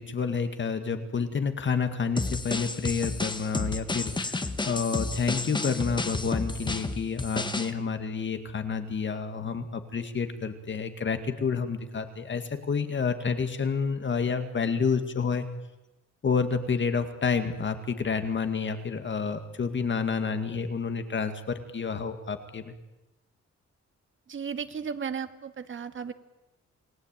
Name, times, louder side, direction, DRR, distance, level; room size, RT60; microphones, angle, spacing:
voice 1, 0.0-15.5 16.2-22.7, left 5 dB, 40° left, 9 dB, 2.1 m, -29 dB
sound 1, 2.2-7.7, left 2 dB, 15° left, 1.5 m, -31 dB
voice 2, 24.3-26.1, right 6 dB, 45° right, 10 dB, 1.7 m, -35 dB
29.5 x 20.0 x 9.1 m, 0.98 s
wide cardioid pair, 160°, 29 cm